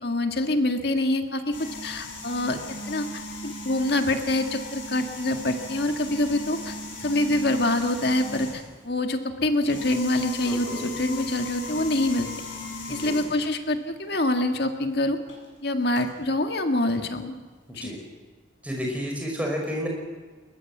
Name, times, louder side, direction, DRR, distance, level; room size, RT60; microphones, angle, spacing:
voice 1, 0.0-1.4 1.8-2.6 2.9-12.3 12.9-15.2 15.6-17.3 17.7-17.9, left 1 dB, 55° left, 6 dB, 1.9 m, -25 dB
sound 1, 1.5-8.8 9.5-13.5 15.3-15.4 16.0-16.1, left 2 dB, 75° left, 7.9 m, -37 dB
voice 2, 10.5-10.9 12.9-13.1 17.8-18.0 18.6-19.9, equal, 5° right, 0 dB, 5.3 m, -31 dB
21.5 x 21.0 x 7.4 m, 1.4 s
head